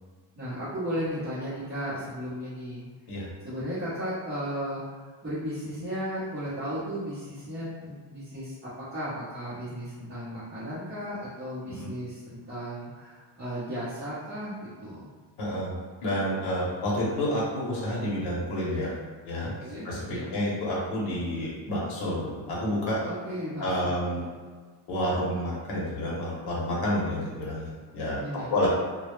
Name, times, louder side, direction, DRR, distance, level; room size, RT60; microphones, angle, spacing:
voice 1, 0.4-2.9 3.4-4.9 5.2-14.5 14.8-15.1 19.6-20.3 23.0-23.9 28.2-28.5, equal, 30° right, -13 dB, 0.8 m, -35 dB
voice 2, 15.4-15.7 16.0-18.9 19.2-19.5 19.8-23.0 23.6-24.3 24.9-28.7, left 1 dB, 55° left, -6 dB, 0.8 m, -29 dB
2.2 x 2.0 x 3.0 m, 1.5 s
cardioid pair, 170°, 45 cm